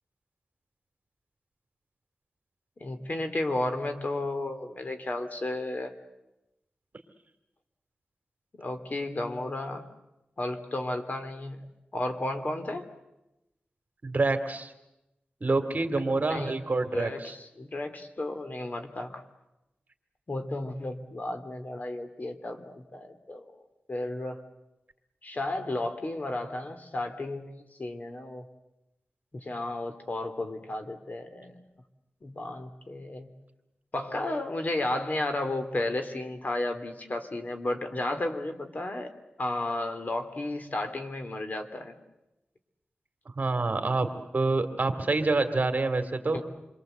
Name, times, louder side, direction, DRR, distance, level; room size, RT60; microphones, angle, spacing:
voice 1, 2.8-5.9 8.6-9.9 10.4-11.6 11.9-12.9 16.0-16.1 16.3-16.6 16.9-19.2 20.3-23.4 23.9-24.4 25.2-27.5 27.8-28.5 29.3-31.6 32.2-33.3 33.9-39.1 39.4-41.9 46.3-46.4, left 2 dB, 45° left, 7 dB, 2.7 m, -33 dB
voice 2, 14.0-14.7 15.4-17.3 43.4-44.1 44.3-46.4, right 3 dB, 45° right, 8 dB, 2.4 m, -27 dB
28.5 x 23.0 x 7.9 m, 0.93 s
wide cardioid pair, 75°, 4 cm